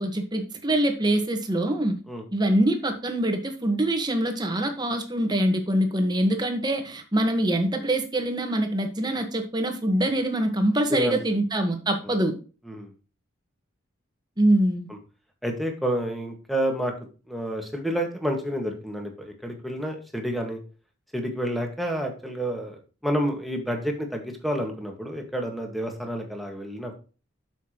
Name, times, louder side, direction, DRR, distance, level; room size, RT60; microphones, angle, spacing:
voice 1, 0.0-2.0 2.3-12.4 14.4-14.9, right 1 dB, 20° right, 5 dB, 1.5 m, -24 dB
voice 2, 15.4-16.9 17.3-20.6 21.1-27.0, equal, ahead, 2 dB, 1.8 m, -29 dB
9.2 x 7.2 x 3.1 m, 0.35 s
head